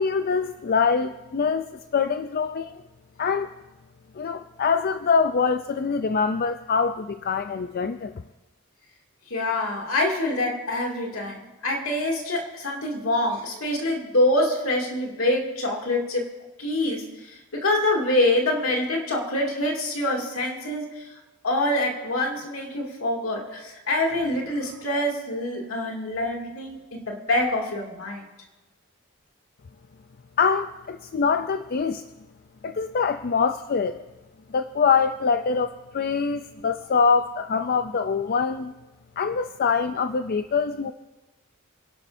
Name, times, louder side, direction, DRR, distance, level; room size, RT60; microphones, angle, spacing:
voice 1, 0.0-1.7 1.9-2.7 3.2-3.5 4.1-8.1 30.4-32.0 32.6-34.0 34.5-38.7 39.2-40.9, left 5 dB, 45° left, 9 dB, 0.4 m, -24 dB
voice 2, 9.3-16.3 16.6-21.1 21.4-28.2, left 1 dB, 70° left, 0 dB, 2.5 m, -25 dB
27.5 x 11.5 x 2.7 m, 1.1 s
head